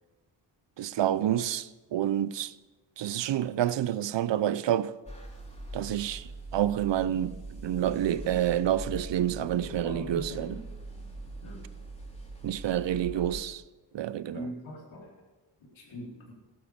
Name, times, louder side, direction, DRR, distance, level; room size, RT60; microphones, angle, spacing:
voice 1, 0.8-2.5 3.0-4.9 5.7-7.4 7.6-10.6 12.4-13.6 13.9-14.5, right 11 dB, 70° right, 0.7 m, -28 dB
sound 1, 5.1-13.3, right 2 dB, 15° left, 4.6 m, -42 dB
voice 2, 9.8-10.6 11.4-11.6 13.1-13.4 14.2-15.1 15.8-16.3, left 1 dB, 90° left, 4.3 m, -41 dB
13.5 x 12.0 x 5.2 m
cardioid pair, 60°, 46 cm